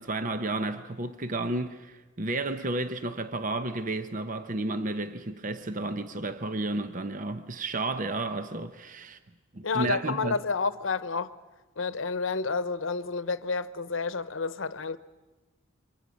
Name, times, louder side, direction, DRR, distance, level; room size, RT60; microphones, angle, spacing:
voice 1, 0.0-9.2 9.5-10.4, right 2 dB, 40° right, 0.8 m, -32 dB
voice 2, 9.6-11.3 11.8-15.0, left 4 dB, 70° left, 0.9 m, -30 dB
28.5 x 24.0 x 6.3 m
head